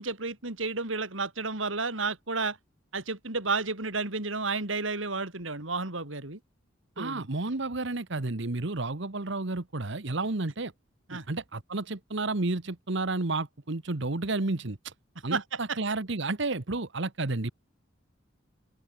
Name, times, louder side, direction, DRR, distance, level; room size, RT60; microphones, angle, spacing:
voice 1, 0.0-2.6 2.9-6.4 7.0-7.3 11.1-11.3 15.3-15.8, right 3 dB, 85° right, 4.0 m, -32 dB
voice 2, 7.0-10.7 11.1-14.9 15.2-17.5, right 2 dB, 65° right, 1.4 m, -31 dB
open air
head